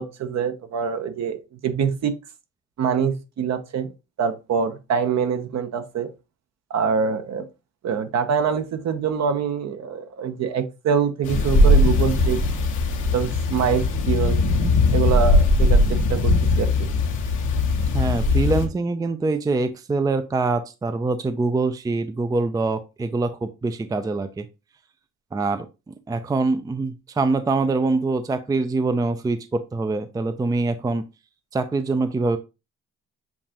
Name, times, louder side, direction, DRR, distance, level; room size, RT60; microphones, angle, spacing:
voice 1, 0.0-2.1 2.8-3.9 4.2-6.1 6.7-7.4 7.8-12.4 13.1-14.4 14.9-16.9, right 7 dB, 60° right, 0.9 m, -25 dB
sound 1, 11.2-18.7, left 2 dB, 85° left, 1.2 m, -19 dB
voice 2, 17.9-24.5 25.3-31.0 31.5-32.4, right 3 dB, 15° right, 0.4 m, -24 dB
7.2 x 2.5 x 2.9 m
cardioid pair, 90°, 30 cm